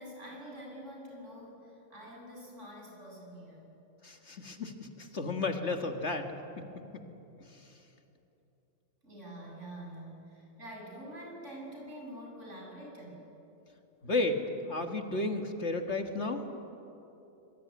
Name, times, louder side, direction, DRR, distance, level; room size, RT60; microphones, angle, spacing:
voice 1, 0.0-3.7 9.0-13.2, right 1 dB, 60° right, -1 dB, 7.8 m, -46 dB
voice 2, 4.0-6.6 6.9-7.0 7.5-7.6 14.0-16.4, left 2 dB, 55° left, 5 dB, 2.0 m, -33 dB
25.5 x 23.5 x 9.6 m, 3.0 s
omnidirectional pair, 1.4 m